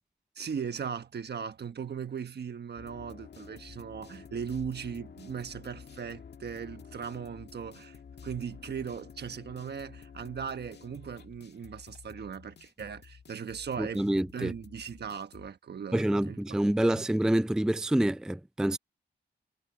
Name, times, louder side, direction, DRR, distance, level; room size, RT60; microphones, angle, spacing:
voice 1, 0.4-8.0 8.2-16.6 16.9-17.1, right 7 dB, 60° right, 1.2 m, -38 dB
sound 1, 2.8-15.5, left 6 dB, 60° left, 1.8 m, -50 dB
voice 2, 13.8-14.5 15.9-18.8, right 1 dB, 5° right, 0.4 m, -27 dB
wide cardioid pair, 105°, 19 cm